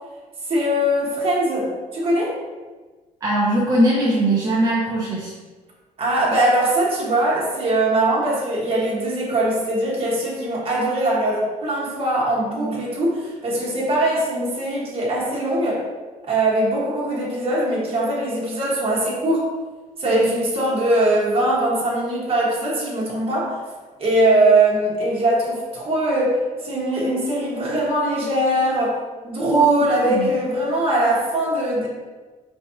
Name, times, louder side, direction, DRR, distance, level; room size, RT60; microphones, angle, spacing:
voice 1, 0.5-2.4 6.0-15.8 16.2-19.5 20.0-23.6 24.0-29.0 29.2-31.9, right 1 dB, 40° right, -6 dB, 1.4 m, -21 dB
voice 2, 3.2-5.3 12.6-12.8 20.1-20.3 29.8-30.3, right 1 dB, 25° right, -6 dB, 0.9 m, -21 dB
5.1 x 3.3 x 2.8 m, 1.3 s
cardioid pair, 105°, 14 cm